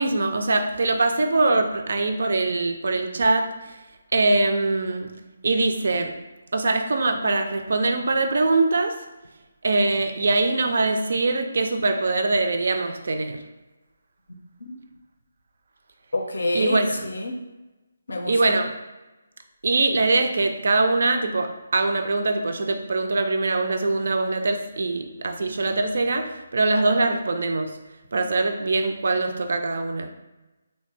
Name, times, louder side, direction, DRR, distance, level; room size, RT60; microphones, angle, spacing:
voice 1, 0.0-3.8 4.1-5.1 5.4-6.2 6.5-9.1 9.6-13.4 16.5-17.1 18.3-18.7 19.6-27.8 28.1-30.1, right 2 dB, 55° right, 0.3 m, -23 dB
voice 2, 14.3-14.8 16.1-17.4 18.1-18.6, left 1 dB, 65° left, 0.5 m, -28 dB
3.1 x 2.6 x 3.3 m
figure-of-eight pair, 145°, 0 cm